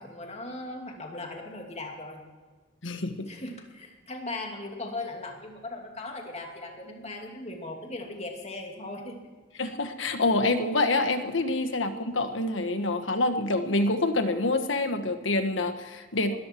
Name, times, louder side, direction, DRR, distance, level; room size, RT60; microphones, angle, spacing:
voice 1, 0.0-2.2 3.3-9.3 16.2-16.4, left 2 dB, 35° left, 1 dB, 2.7 m, -38 dB
voice 2, 2.8-3.3 9.6-16.4, left 2 dB, 90° left, 8 dB, 1.5 m, -26 dB
20.5 x 14.0 x 4.6 m, 1.4 s
head